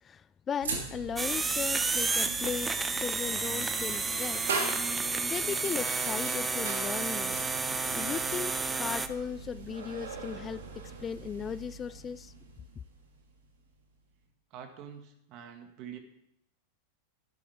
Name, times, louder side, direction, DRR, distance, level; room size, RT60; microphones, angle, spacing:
voice 1, 0.0-4.5 5.2-7.4 8.0-12.3, left 7 dB, 25° left, 18 dB, 0.3 m, -37 dB
sound 1, 0.6-13.8, right 4 dB, 80° right, 2.3 m, -41 dB
sound 2, 1.2-9.1, right 4 dB, 15° right, 0.7 m, -31 dB
voice 2, 14.5-16.0, right 8 dB, 50° right, 5 dB, 1.9 m, -45 dB
12.5 x 11.0 x 3.6 m, 0.81 s
hypercardioid pair, 100°, 0 cm